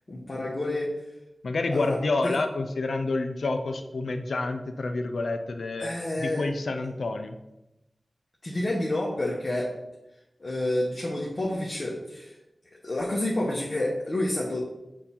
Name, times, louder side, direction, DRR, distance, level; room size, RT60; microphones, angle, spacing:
voice 1, 0.1-0.9 1.7-2.3 5.8-6.5 8.4-9.7 10.4-12.3 12.8-14.6, left 1 dB, 50° left, -4 dB, 1.1 m, -29 dB
voice 2, 1.4-5.9 6.2-7.3, left 3 dB, 85° left, 6 dB, 0.5 m, -28 dB
6.8 x 2.7 x 5.5 m, 0.93 s
cardioid pair, 50°, 0 cm